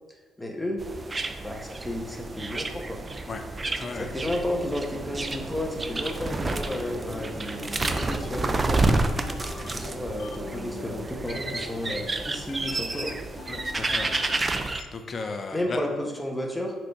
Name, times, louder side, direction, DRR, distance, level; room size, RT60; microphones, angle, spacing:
voice 1, 0.4-0.8 1.4-3.0 4.1-8.9 9.7-13.2 15.5-16.7, left 1 dB, 5° left, 1 dB, 1.2 m, -32 dB
sound 1, 0.8-14.8, right 2 dB, 25° right, 0.5 m, -30 dB
voice 2, 3.7-4.1 13.5-14.2 14.9-15.8, left 4 dB, 40° left, 5 dB, 0.7 m, -35 dB
sound 2, 6.4-14.9, left 6 dB, 80° left, 0.4 m, -43 dB
6.3 x 4.1 x 4.8 m, 1.3 s
cardioid pair, 90°, 0 cm